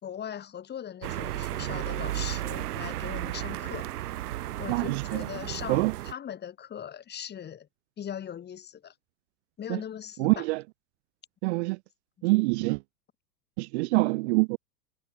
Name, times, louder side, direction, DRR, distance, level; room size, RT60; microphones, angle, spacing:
voice 1, 0.0-3.9 4.6-7.7 8.0-8.9 9.6-10.5, left 9 dB, 20° left, 1.6 m, -39 dB
sound 1, 1.0-6.1, right 14 dB, 75° right, 0.9 m, -34 dB
voice 2, 4.7-5.2 5.7-5.9 9.7-9.8 10.2-10.6 11.4-11.8 12.2-12.8 13.6-14.6, right 25 dB, 45° right, 0.6 m, -25 dB
hypercardioid pair, 110°, 46 cm